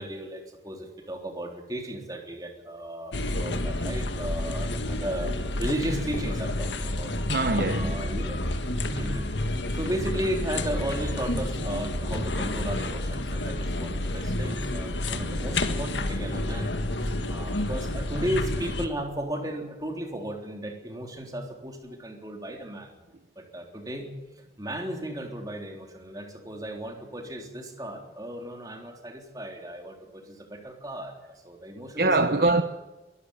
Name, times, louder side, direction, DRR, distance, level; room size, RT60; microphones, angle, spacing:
voice 1, 0.0-7.1 7.7-8.4 8.9-9.3 9.7-16.7 17.0-22.9 23.4-32.6, right 1 dB, 20° right, 3.6 m, -35 dB
sound 1, 3.1-18.9, left 1 dB, 85° left, 1.9 m, -30 dB
voice 2, 7.3-8.0 32.0-32.6, right 2 dB, 55° right, 0.9 m, -23 dB
22.5 x 14.0 x 8.6 m
head